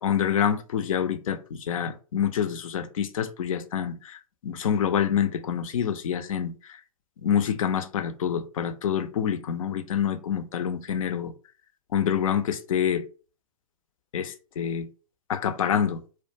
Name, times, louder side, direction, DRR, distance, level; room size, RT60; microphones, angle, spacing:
voice 1, 0.0-6.8 7.2-11.3 11.9-13.1 14.1-14.9 15.3-16.0, left 8 dB, 70° left, 0.4 m, -27 dB
2.2 x 2.2 x 2.7 m
figure-of-eight pair, 105°, 18 cm